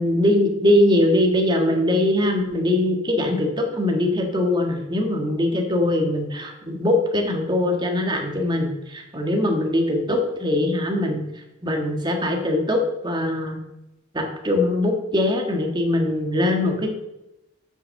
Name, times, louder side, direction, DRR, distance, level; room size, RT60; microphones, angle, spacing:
voice 1, 0.0-11.2 11.6-13.6 14.1-16.9, left 1 dB, 25° right, 3 dB, 1.6 m, -22 dB
8.4 x 6.9 x 6.5 m, 0.92 s
head